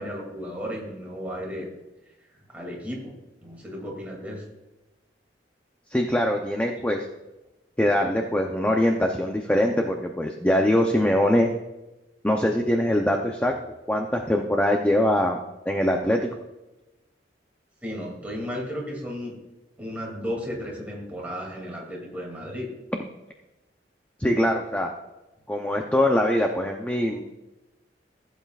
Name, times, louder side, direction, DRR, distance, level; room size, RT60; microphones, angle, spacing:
voice 1, 0.0-1.7 2.3-4.4 17.8-19.3 19.8-22.7, equal, 10° right, -2 dB, 2.6 m, -34 dB
voice 2, 5.9-7.1 7.8-11.5 12.2-13.5 13.9-15.4 15.7-16.3 24.2-24.9 25.5-27.2, left 1 dB, 10° left, 2 dB, 0.6 m, -22 dB
15.5 x 8.0 x 2.4 m, 1.0 s
head